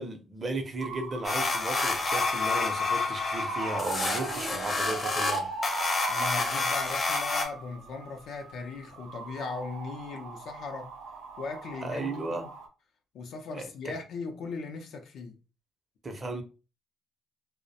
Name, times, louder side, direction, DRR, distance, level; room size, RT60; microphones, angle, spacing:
voice 1, 0.0-5.5 11.8-12.5 13.5-13.9 16.0-16.4, right 2 dB, 35° right, 0.6 m, -35 dB
sound 1, 0.8-12.7, right 4 dB, 85° right, 0.4 m, -39 dB
sound 2, 1.2-7.4, left 3 dB, 40° left, 0.6 m, -29 dB
voice 2, 6.1-10.9 11.4-12.4 13.1-15.4, left 4 dB, 75° left, 0.5 m, -38 dB
2.4 x 2.1 x 2.7 m
cardioid pair, 90°, 0 cm